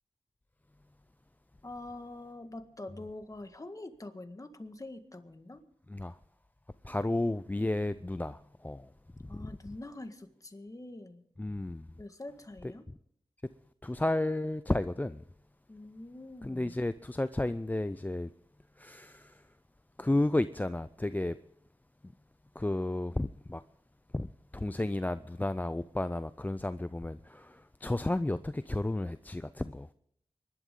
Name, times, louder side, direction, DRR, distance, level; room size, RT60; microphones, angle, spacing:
voice 1, 1.6-5.6 9.3-11.2 12.0-12.9 15.7-16.8, left 2 dB, 30° left, 1.7 m, -45 dB
voice 2, 6.8-8.9 9.3-9.5 11.4-11.9 12.9-13.0 13.8-15.2 16.4-18.3 18.8-19.4 20.0-21.4 22.6-23.6 24.1-29.9, left 1 dB, 15° left, 0.5 m, -32 dB
24.5 x 11.5 x 3.8 m
cardioid pair, 50°, 11 cm